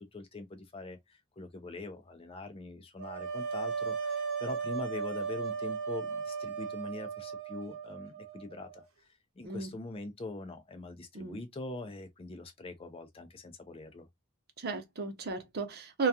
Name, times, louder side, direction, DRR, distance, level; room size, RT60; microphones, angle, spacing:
voice 1, 0.0-8.8 9.4-14.1, left 2 dB, 25° left, 0.4 m, -43 dB
sound 1, 3.0-8.9, right 5 dB, 75° right, 1.0 m, -36 dB
voice 2, 14.6-16.1, right 4 dB, 50° right, 0.7 m, -34 dB
2.3 x 2.3 x 2.7 m
head